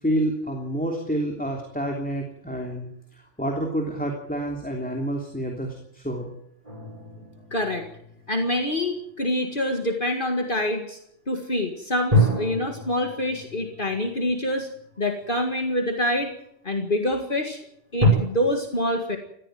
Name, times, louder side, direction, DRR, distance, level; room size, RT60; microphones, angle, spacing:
voice 1, 0.0-6.3, right 1 dB, 5° left, 1 dB, 3.2 m, -28 dB
sound 1, 6.6-9.2 12.1-15.5 16.2-16.3 18.0-18.1, left 1 dB, 30° right, 6.4 m, -27 dB
voice 2, 7.5-7.9 8.3-11.0 11.3-14.7 15.0-16.3 16.6-17.6 17.9-19.2, left 1 dB, 45° left, 3 dB, 2.1 m, -26 dB
19.5 x 14.5 x 9.2 m, 0.73 s
omnidirectional pair, 1.3 m